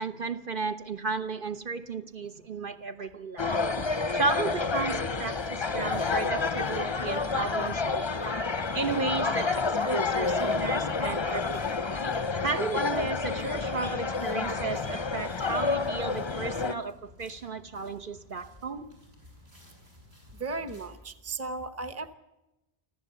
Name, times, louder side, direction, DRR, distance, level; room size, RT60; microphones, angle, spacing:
voice 1, 0.0-3.9 4.1-8.3 8.7-11.9 12.4-18.9, right 3 dB, 55° right, 7 dB, 1.2 m, -34 dB
sound 1, 3.4-16.7, left 4 dB, 30° left, 0.7 m, -29 dB
sound 2, 4.4-20.9, left 2 dB, 80° right, 8.5 m, -55 dB
voice 2, 20.4-22.1, right 3 dB, 15° right, 12 dB, 1.0 m, -35 dB
25.5 x 14.5 x 8.2 m, 0.97 s
omnidirectional pair, 1.1 m